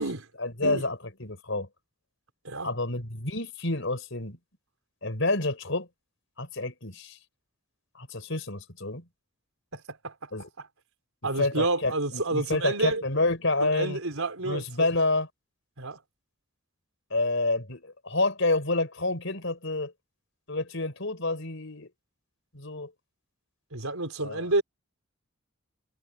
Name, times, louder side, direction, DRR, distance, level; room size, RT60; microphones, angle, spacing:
voice 1, 0.4-1.7 2.6-4.4 5.0-5.9 6.4-7.2 7.9-9.0 10.3-10.5 11.4-14.0 14.4-15.3 17.1-19.9 20.5-21.9 22.5-22.9 24.2-24.5, left 2 dB, 65° left, 4.9 m, -28 dB
voice 2, 9.7-10.3 11.2-13.0 13.6-14.9 15.8-16.0 23.7-24.6, right 2 dB, 85° right, 4.3 m, -29 dB
head